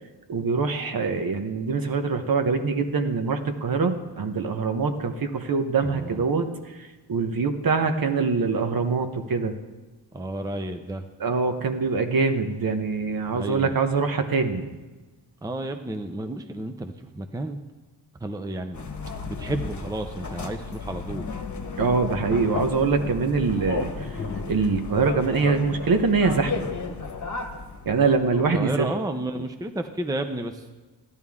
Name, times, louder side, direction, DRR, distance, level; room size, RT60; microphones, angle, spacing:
voice 1, 0.3-6.8 7.1-9.5 11.2-14.7 21.8-24.2 24.5-26.7 27.9-28.9, right 4 dB, 50° right, 7 dB, 1.2 m, -24 dB
voice 2, 5.8-6.2 10.1-11.0 13.3-13.8 15.4-17.6 18.2-18.9 19.3-21.3 28.5-30.7, right 1 dB, 10° right, 7 dB, 0.6 m, -32 dB
sound 1, 18.7-28.6, left 4 dB, 40° left, 1.3 m, -33 dB
14.0 x 11.0 x 3.6 m, 1.2 s
cardioid pair, 80°, 44 cm